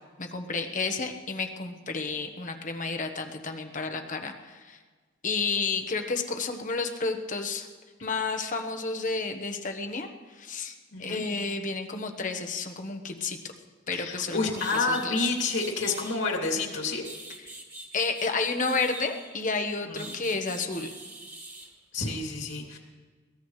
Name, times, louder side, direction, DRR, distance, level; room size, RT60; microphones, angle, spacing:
voice 1, 0.2-4.8 5.2-7.7 8.0-13.5 13.9-15.3 17.9-21.0, left 4 dB, 40° left, 5 dB, 1.2 m, -31 dB
voice 2, 10.9-11.2 13.9-17.0 19.9-20.1 21.9-22.8, left 3 dB, 70° left, 0 dB, 2.8 m, -29 dB
sound 1, 14.1-14.2 14.5-16.2 16.8-19.4 19.9-21.7, right 2 dB, 15° right, 2.5 m, -44 dB
22.5 x 17.5 x 3.3 m, 1.4 s
head